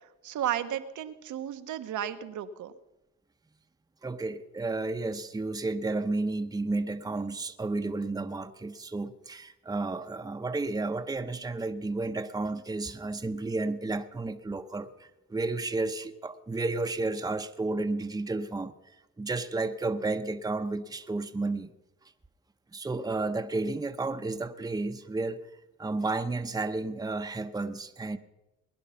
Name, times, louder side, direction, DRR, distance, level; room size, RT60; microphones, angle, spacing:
voice 1, 0.2-2.7, right 10 dB, 75° right, 1.1 m, -33 dB
voice 2, 4.0-18.7 19.2-21.7 22.7-25.4 25.8-28.2, right 3 dB, 10° right, 0.8 m, -32 dB
21.0 x 10.5 x 5.8 m
cardioid pair, 90°, 30 cm